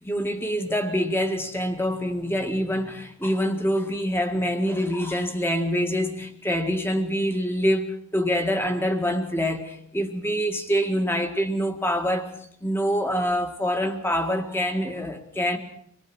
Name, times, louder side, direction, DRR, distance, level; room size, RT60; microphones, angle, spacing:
voice 1, 0.0-12.3 12.6-15.6, equal, 10° left, 6 dB, 1.9 m, -25 dB
25.0 x 18.5 x 6.2 m, 0.67 s
head